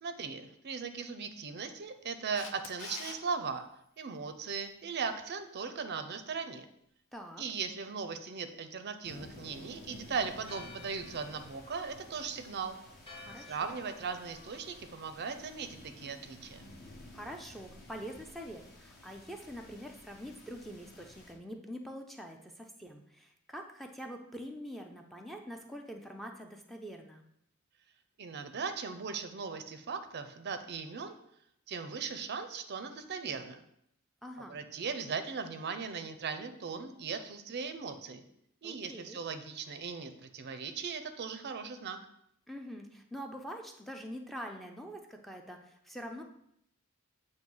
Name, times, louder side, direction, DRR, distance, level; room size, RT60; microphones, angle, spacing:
voice 1, 0.0-3.6 4.0-6.7 7.4-12.8 13.4-16.6 28.2-31.2 31.7-33.6 34.4-38.2 38.6-42.0, right 5 dB, 50° right, 8 dB, 0.5 m, -38 dB
Camera, 2.3-3.2 9.9-10.0, left 6 dB, 65° left, 0.6 m, -44 dB
voice 2, 7.1-7.4 13.2-13.8 17.1-27.2 34.2-34.6 38.6-39.2 42.5-46.2, equal, ahead, 2 dB, 0.5 m, -45 dB
sound 1, 9.0-21.3, left 1 dB, 45° left, 1.1 m, -53 dB
Church bell, 10.4-16.7, left 3 dB, 25° left, 0.8 m, -55 dB
7.6 x 2.7 x 5.4 m, 0.74 s
head